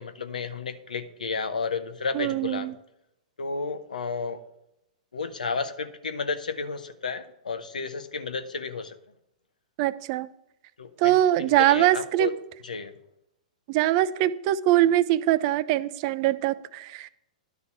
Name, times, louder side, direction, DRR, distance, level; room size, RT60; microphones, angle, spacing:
voice 1, 0.0-2.7 3.4-4.4 5.1-9.0 10.8-12.3 12.6-12.9, left 4 dB, 90° left, 10 dB, 0.8 m, -32 dB
voice 2, 2.1-2.7 9.8-10.3 11.0-12.3 13.7-17.1, right 14 dB, 45° right, 16 dB, 0.5 m, -23 dB
11.0 x 4.1 x 7.2 m, 0.83 s
hypercardioid pair, 120°, 4 cm